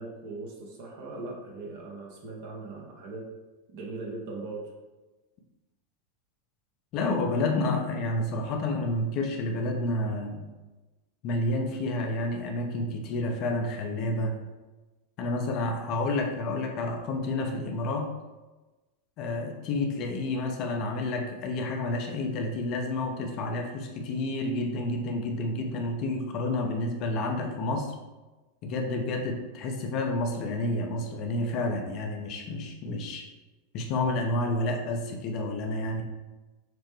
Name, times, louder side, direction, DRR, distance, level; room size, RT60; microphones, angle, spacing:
voice 1, 0.0-3.3 3.7-4.7, right 3 dB, 60° right, -1 dB, 0.9 m, -39 dB
voice 2, 6.9-10.5 11.2-14.3 15.2-18.1 19.2-27.9 28.6-33.3 33.7-36.0, left 2 dB, 50° left, 3 dB, 0.7 m, -30 dB
6.0 x 2.1 x 3.2 m, 1.2 s
hypercardioid pair, 90°, 0 cm